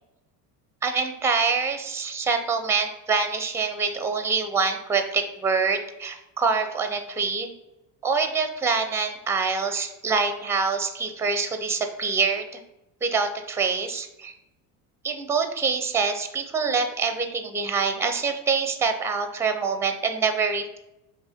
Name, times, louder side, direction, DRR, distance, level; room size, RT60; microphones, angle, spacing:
voice 1, 0.8-7.5 8.0-12.5 13.0-14.3 15.0-20.8, right 5 dB, 5° right, 7 dB, 0.4 m, -25 dB
4.5 x 3.0 x 3.5 m, 0.90 s
hypercardioid pair, 70°, 49 cm